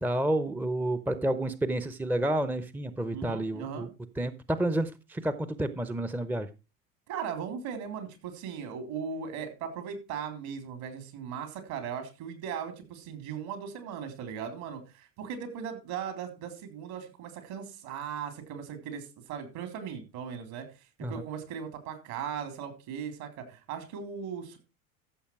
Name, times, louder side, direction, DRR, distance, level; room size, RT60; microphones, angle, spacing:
voice 1, 0.0-3.9 4.2-6.5 21.0-21.2, right 1 dB, 5° right, 13 dB, 0.8 m, -30 dB
voice 2, 3.1-3.9 7.1-24.6, right 7 dB, 60° right, 8 dB, 3.7 m, -38 dB
14.0 x 6.9 x 4.7 m, 0.30 s
figure-of-eight pair, 75°, 42 cm